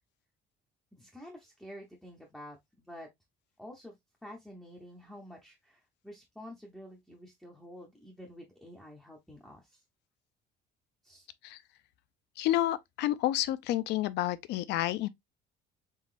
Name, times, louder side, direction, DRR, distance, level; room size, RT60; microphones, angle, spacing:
voice 1, 0.9-3.1 3.6-9.8 11.0-11.3, equal, ahead, 0.6 m, -49 dB
voice 2, 12.4-15.1, left 14 dB, 60° left, 0.5 m, -30 dB
4.0 x 3.8 x 2.4 m
cardioid pair, 175°, 19 cm